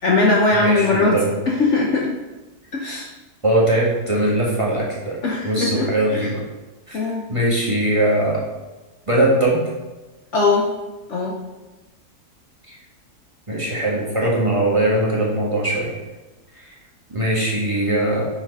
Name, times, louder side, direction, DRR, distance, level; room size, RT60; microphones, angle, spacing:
voice 1, 0.0-2.1 2.7-3.1 5.2-6.3 6.9-7.3 10.3-10.7 11.1-11.3, left 3 dB, 55° left, -1 dB, 1.0 m, -20 dB
voice 2, 0.5-1.3 3.4-5.2 5.4-6.4 6.9-7.0 7.3-8.4 9.1-9.6 13.5-15.9 16.6-16.7 17.1-18.2, right 1 dB, 20° right, -5 dB, 1.5 m, -20 dB
5.9 x 4.4 x 5.4 m, 1.2 s
omnidirectional pair, 1.7 m